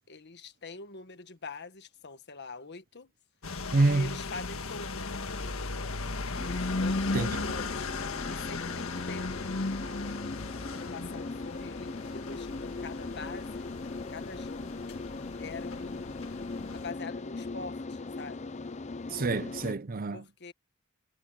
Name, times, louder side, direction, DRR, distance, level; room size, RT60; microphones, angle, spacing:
voice 1, 0.0-3.1 3.9-5.6 6.8-7.9 8.3-9.5 10.7-13.7 14.1-14.9 15.4-16.5 16.7-18.4 20.1-20.5, left 4 dB, 55° left, 1.4 m, -44 dB
sound 1, 3.4-16.9, left 3 dB, 75° left, 1.7 m, -36 dB
voice 2, 3.7-4.2 7.1-7.5 19.1-20.2, right 3 dB, 45° right, 0.6 m, -27 dB
sound 2, 6.4-19.7, left 3 dB, 35° left, 0.7 m, -39 dB
head